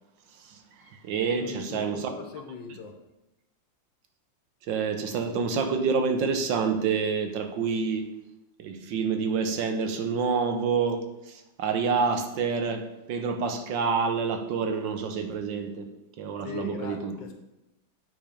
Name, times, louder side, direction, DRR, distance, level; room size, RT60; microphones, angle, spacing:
voice 1, 0.3-2.1 4.7-8.1 8.6-15.9 16.2-17.1, right 5 dB, 75° right, 1.5 m, -28 dB
voice 2, 1.4-3.0 16.4-17.3, left 5 dB, 80° left, 1.5 m, -41 dB
9.4 x 4.0 x 5.0 m
omnidirectional pair, 2.0 m